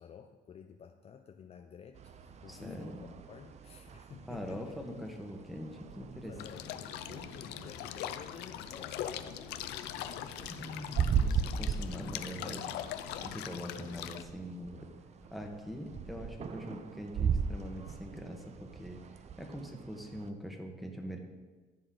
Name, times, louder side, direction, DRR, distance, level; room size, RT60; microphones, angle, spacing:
voice 1, 0.0-4.8 6.2-11.2, left 7 dB, 40° left, 6 dB, 0.5 m, -52 dB
sound 1, 1.9-20.3, right 6 dB, 40° right, 0.6 m, -39 dB
voice 2, 2.5-3.0 4.3-6.3 10.5-12.7 13.2-14.9 15.3-19.0 19.4-21.2, equal, ahead, 1 dB, 1.5 m, -43 dB
sound 2, 6.4-14.2, left 11 dB, 85° left, 0.6 m, -41 dB
sound 3, 15.2-15.6, right 2 dB, 15° right, 1.8 m, -61 dB
14.5 x 6.8 x 3.9 m, 1.3 s
cardioid pair, 110°, 17 cm